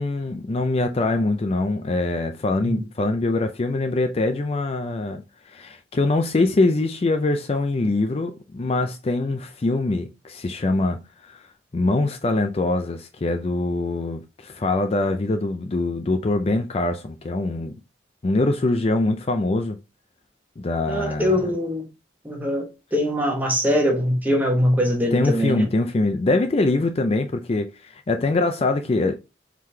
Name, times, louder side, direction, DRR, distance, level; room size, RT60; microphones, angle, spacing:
voice 1, 0.0-11.4 11.7-17.7 18.2-19.8 20.6-21.5 25.1-29.2, left 2 dB, 35° left, 0.4 m, -23 dB
voice 2, 20.9-21.9 22.2-22.7 22.9-25.7, equal, 10° right, 1.2 m, -22 dB
4.8 x 3.8 x 2.8 m
head